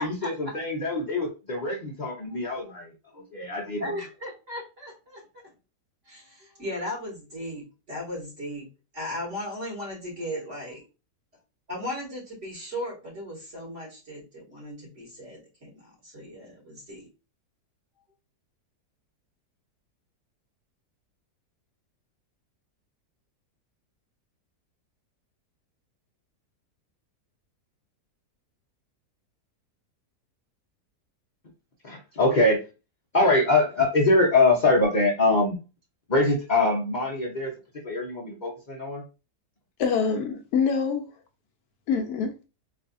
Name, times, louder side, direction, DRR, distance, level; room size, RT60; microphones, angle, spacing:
voice 1, 0.0-3.8 31.8-32.6 33.1-35.6 36.1-37.5 37.8-39.0, left 2 dB, 45° left, 0.6 m, -23 dB
voice 2, 3.5-5.2 6.1-8.7 8.9-10.8 11.7-17.1, left 1 dB, 45° right, 2.3 m, -37 dB
voice 3, 39.8-41.1 41.9-42.5, left 6 dB, 75° left, 1.0 m, -25 dB
4.0 x 2.6 x 2.5 m
omnidirectional pair, 1.7 m